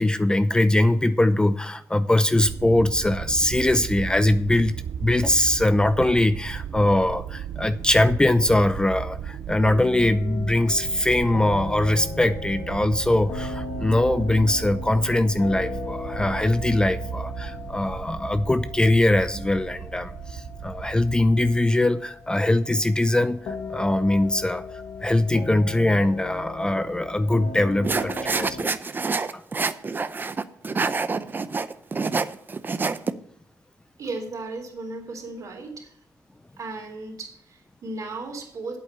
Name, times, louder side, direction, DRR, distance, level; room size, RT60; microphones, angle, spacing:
voice 1, 0.0-24.7 25.0-28.8 29.3-29.4, left 1 dB, 10° left, 12 dB, 0.5 m, -22 dB
sound 1, 2.4-21.6, right 8 dB, 80° right, 0.5 m, -35 dB
sound 2, 9.6-28.6, left 4 dB, 70° left, 1.6 m, -37 dB
sound 3, 27.8-33.1, right 4 dB, 30° right, 0.6 m, -26 dB
voice 2, 34.0-36.0 36.6-38.8, right 3 dB, 55° right, 1 dB, 3.6 m, -35 dB
8.5 x 8.2 x 6.9 m, 0.67 s
cardioid pair, 100°, 7 cm